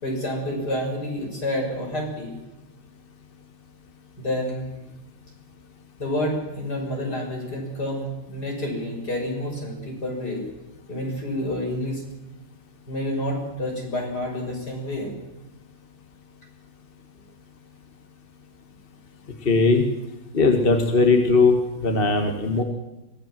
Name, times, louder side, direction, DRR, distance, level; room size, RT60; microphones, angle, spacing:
voice 1, 0.0-2.3 4.2-4.6 6.0-10.4 10.9-12.0 12.9-15.1, left 1 dB, 45° left, 0 dB, 6.8 m, -29 dB
voice 2, 19.4-19.8 20.3-22.6, left 3 dB, 25° left, 4 dB, 1.8 m, -19 dB
24.5 x 16.0 x 7.7 m, 1.0 s
omnidirectional pair, 2.3 m